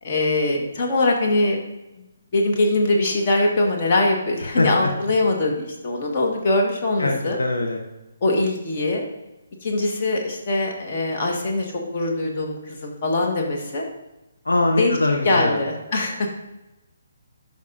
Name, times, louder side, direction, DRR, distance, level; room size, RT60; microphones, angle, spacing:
voice 1, 0.0-1.6 2.3-7.4 8.2-9.0 9.6-13.8 14.8-15.0 15.2-16.3, left 2 dB, 40° left, 0 dB, 1.5 m, -22 dB
voice 2, 4.5-4.9 7.0-7.8 14.4-15.6, left 2 dB, 75° left, 1 dB, 1.0 m, -22 dB
12.0 x 5.3 x 2.6 m, 0.99 s
figure-of-eight pair, 140°, 0 cm